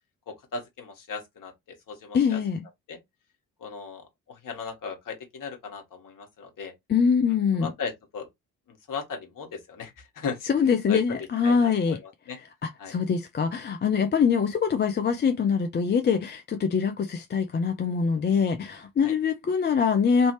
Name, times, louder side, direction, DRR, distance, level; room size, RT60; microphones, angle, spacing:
voice 1, 0.3-2.4 2.9-3.0 3.6-6.7 7.6-8.3 8.7-10.5 10.9-12.4 12.8-12.9 19.0-19.1, left 5 dB, 45° left, 1.4 m, -37 dB
voice 2, 2.1-2.6 6.9-7.7 10.5-12.0 12.6-20.3, left 6 dB, 25° left, 0.5 m, -24 dB
3.2 x 2.7 x 3.1 m
hypercardioid pair, 50°, 43 cm